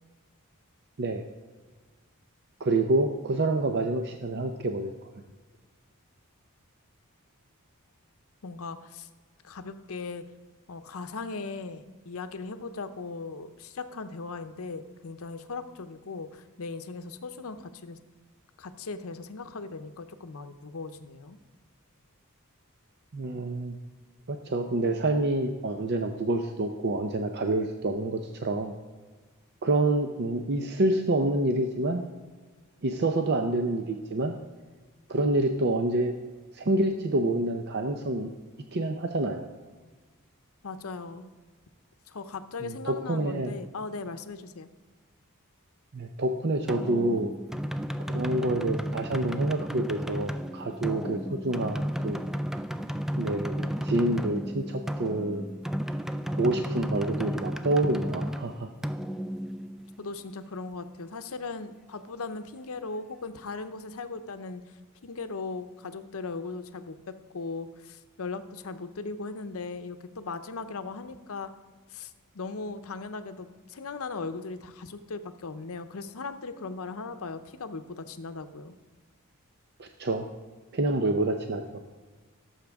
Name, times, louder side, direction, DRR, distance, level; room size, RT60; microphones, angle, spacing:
voice 1, 2.6-4.9 23.1-23.8 24.3-28.7 29.6-32.0 32.8-34.4 35.1-36.1 36.5-38.3 38.7-39.5 42.6-43.5 45.9-47.3 48.1-52.2 53.2-55.5 56.3-58.7 79.8-80.3 80.7-81.6, right 2 dB, 50° right, 5 dB, 0.6 m, -27 dB
voice 2, 8.4-9.1 9.4-10.2 10.7-18.0 18.6-21.4 40.6-41.3 42.1-44.7 60.0-64.6 65.0-71.5 71.9-78.7, left 4 dB, 65° left, 10 dB, 0.7 m, -38 dB
sound 1, 46.7-60.2, equal, ahead, 0.3 m, -33 dB
16.5 x 7.3 x 3.5 m, 1.4 s
head